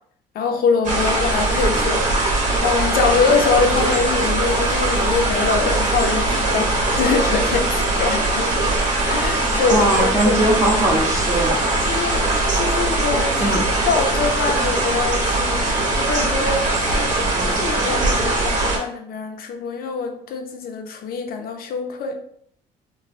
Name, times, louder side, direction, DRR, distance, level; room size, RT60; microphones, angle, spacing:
voice 1, 0.3-2.1 2.6-8.7 9.1-10.4 11.9-13.5 13.8-17.1 17.4-22.2, left 5 dB, 60° left, 4 dB, 0.6 m, -24 dB
sound 1, 0.8-18.8, right 2 dB, 50° right, 0.8 m, -21 dB
voice 2, 9.7-11.6 13.4-13.6, right 1 dB, 20° right, -1 dB, 0.7 m, -20 dB
3.1 x 2.2 x 2.6 m, 0.63 s
cardioid pair, 110°, 17 cm